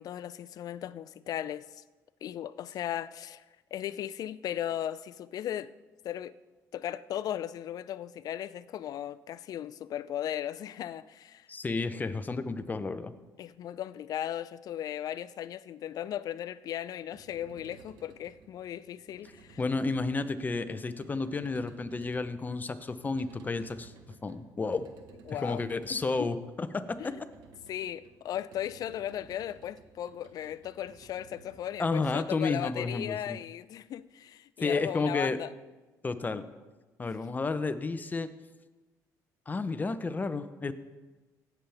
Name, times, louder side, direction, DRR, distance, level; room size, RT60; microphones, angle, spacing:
voice 1, 0.0-1.8 2.2-3.4 3.7-5.7 6.0-6.4 6.7-11.5 13.4-19.6 25.3-25.6 25.9-26.3 27.0-27.2 27.7-35.5 37.0-37.1, left 11 dB, 60° left, 0.4 m, -37 dB
voice 2, 11.5-13.1 19.6-23.9 24.2-24.9 25.4-27.1 31.8-33.4 34.6-35.4 36.0-36.4 37.0-38.3 39.5-40.7, left 3 dB, 25° left, 0.7 m, -31 dB
sound 1, 16.9-33.1, right 4 dB, 80° right, 1.2 m, -56 dB
16.5 x 7.1 x 3.5 m
cardioid pair, 90°, 7 cm